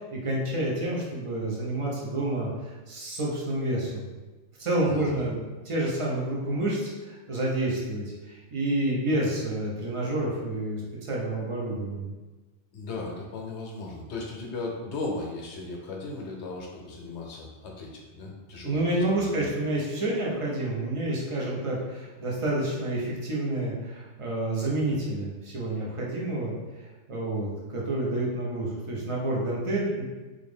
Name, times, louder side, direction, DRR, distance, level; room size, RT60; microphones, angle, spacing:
voice 1, 0.0-4.1 4.6-12.1 18.6-26.6 27.1-30.0, right 1 dB, 30° right, -4 dB, 0.7 m, -29 dB
voice 2, 4.9-5.2 12.7-19.5, left 3 dB, 65° left, -1 dB, 1.0 m, -37 dB
3.3 x 2.5 x 3.5 m, 1.2 s
omnidirectional pair, 1.3 m